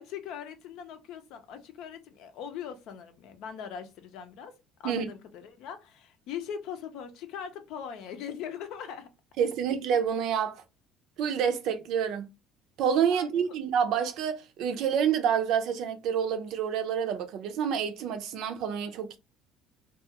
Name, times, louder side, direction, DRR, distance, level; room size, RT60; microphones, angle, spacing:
voice 1, 0.0-9.1 13.1-13.6, left 8 dB, 70° left, 0.6 m, -41 dB
voice 2, 9.4-10.6 11.2-12.3 12.8-19.2, right 7 dB, 65° right, 0.5 m, -28 dB
2.4 x 2.3 x 2.8 m
cardioid pair, 105°, 0 cm